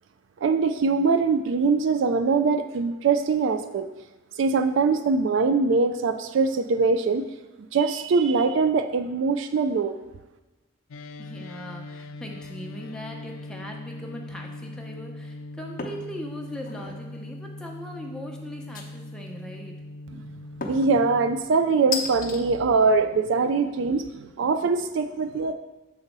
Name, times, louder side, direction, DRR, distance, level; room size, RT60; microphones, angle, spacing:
voice 1, 0.4-3.9 4.4-7.3 7.7-9.9 20.6-25.5, right 4 dB, 60° right, 8 dB, 0.3 m, -22 dB
sound 1, 10.9-21.4, left 2 dB, 75° left, 0.4 m, -40 dB
voice 2, 11.2-19.7, equal, 5° left, 0 dB, 0.7 m, -39 dB
sound 2, 15.8-16.1 16.5-17.0 18.7-19.3 20.6-21.0 21.9-22.4, left 4 dB, 40° left, 0.7 m, -33 dB
7.0 x 4.0 x 5.3 m, 1.1 s
head